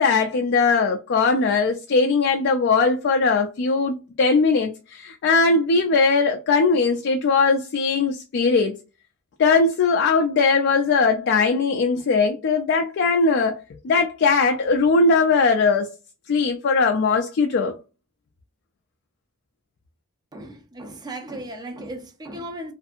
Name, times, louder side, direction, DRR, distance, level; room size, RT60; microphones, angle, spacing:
voice 1, 0.0-8.8 9.4-15.9 16.3-17.7, left 4 dB, 55° left, 0.3 m, -20 dB
voice 2, 20.3-22.7, right 1 dB, 20° right, 0.5 m, -36 dB
2.6 x 2.5 x 2.4 m
head